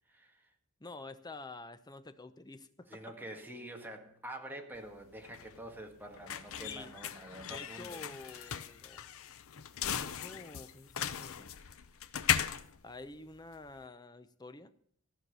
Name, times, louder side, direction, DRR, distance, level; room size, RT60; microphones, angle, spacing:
voice 1, 0.1-0.5 2.9-8.5 11.5-11.8, right 1 dB, 10° right, 3 dB, 1.6 m, -47 dB
voice 2, 0.8-3.0 6.6-6.9 7.5-9.0 9.9-11.5 12.8-14.7, left 2 dB, 20° left, 11 dB, 0.7 m, -49 dB
sound 1, 4.8-13.8, left 9 dB, 65° left, 0.7 m, -38 dB
15.0 x 5.9 x 8.1 m, 0.65 s
head